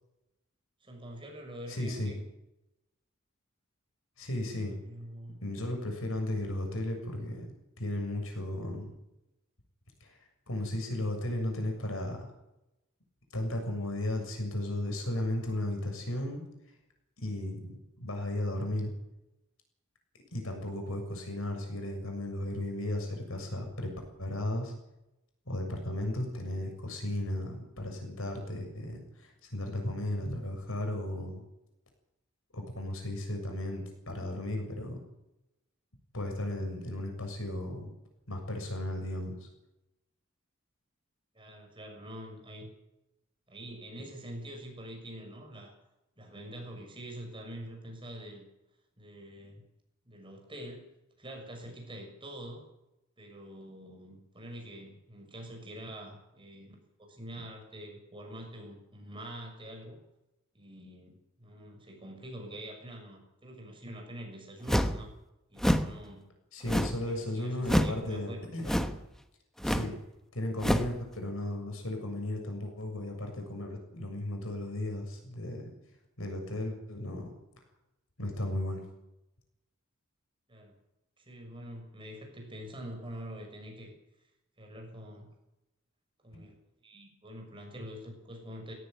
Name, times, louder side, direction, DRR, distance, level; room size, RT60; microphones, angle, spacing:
voice 1, 0.8-2.2 4.6-5.4 41.3-42.7 43.5-45.7 46.2-48.5 49.0-49.6 50.1-50.9 51.2-52.7 53.2-56.8 57.1-60.0 60.5-65.1 65.5-66.3 67.0-68.4 80.5-80.7 81.2-83.9 84.6-85.3 86.2-86.6 86.8-88.7, right 1 dB, 25° right, 2 dB, 6.6 m, -45 dB
voice 2, 1.7-2.1 4.2-4.7 5.4-8.9 10.0-10.1 10.5-12.3 13.3-16.4 17.2-18.9 20.3-23.9 24.2-24.7 25.5-31.4 32.5-35.0 36.1-37.9 38.3-39.5 66.5-68.8 69.6-69.9 70.3-75.6 76.2-77.3 78.2-78.8, left 1 dB, 75° left, 4 dB, 7.2 m, -35 dB
sound 1, 64.7-65.0 65.6-65.9 66.7-67.1 67.6-68.0 68.6-69.0 69.6-69.9 70.6-70.9, equal, ahead, 1.2 m, -27 dB
19.0 x 17.0 x 9.5 m, 0.91 s
head